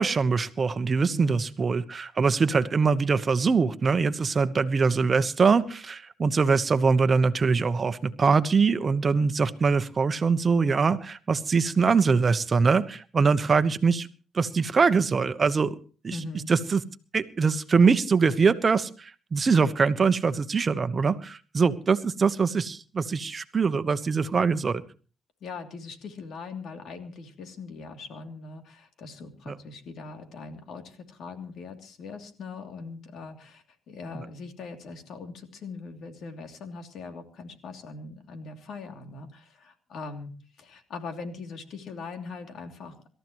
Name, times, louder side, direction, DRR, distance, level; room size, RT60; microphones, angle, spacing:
voice 1, 0.0-14.1 14.3-15.7 16.0-16.2 16.5-16.8 17.1-24.8 29.5-29.6, right 5 dB, 35° right, 12 dB, 1.1 m, -23 dB
voice 2, 1.1-1.5 16.1-16.5 25.4-43.0, left 4 dB, 70° left, 5 dB, 3.0 m, -41 dB
26.0 x 13.5 x 3.1 m, 0.37 s
cardioid pair, 90°, 0 cm